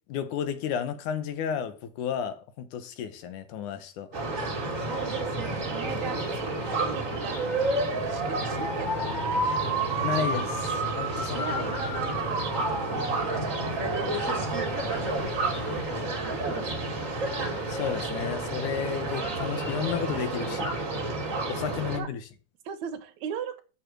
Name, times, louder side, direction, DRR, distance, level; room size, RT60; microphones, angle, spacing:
voice 1, 0.1-4.1 10.0-11.7 17.7-20.7 21.5-22.2, left 8 dB, 90° left, 2.6 m, -32 dB
sound 1, 4.1-22.0, right 2 dB, 30° right, 2.0 m, -30 dB
voice 2, 4.8-6.5 6.8-9.9 11.1-15.4 15.7-15.8 16.2-16.9 21.9-22.1 22.7-23.6, right 8 dB, 70° right, 2.1 m, -39 dB
sound 2, 7.9-15.8, left 3 dB, 30° left, 4.1 m, -42 dB
6.9 x 5.9 x 7.4 m
omnidirectional pair, 3.5 m